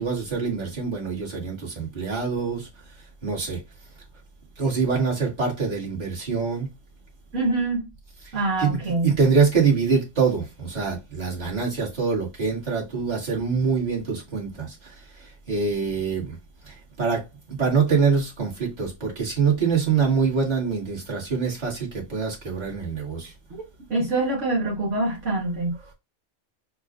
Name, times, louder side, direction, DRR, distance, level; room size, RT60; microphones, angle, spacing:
voice 1, 0.0-2.7 3.2-3.6 4.6-6.7 8.6-8.8 9.0-16.4 16.7-17.2 17.5-23.3, right 5 dB, 35° right, 1.9 m, -24 dB
voice 2, 7.3-7.8 8.3-9.1 23.9-25.9, right 2 dB, 70° right, 1.5 m, -25 dB
6.7 x 2.4 x 2.4 m
omnidirectional pair, 1.4 m